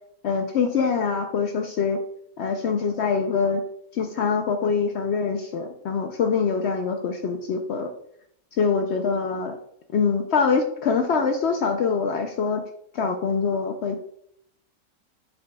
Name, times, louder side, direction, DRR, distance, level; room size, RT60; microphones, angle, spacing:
voice 1, 0.2-2.0 2.4-3.6 3.9-7.9 8.5-9.5 9.9-12.6 12.9-14.0, left 5 dB, 70° left, 5 dB, 0.6 m, -24 dB
8.2 x 5.3 x 2.2 m, 0.72 s
omnidirectional pair, 1.6 m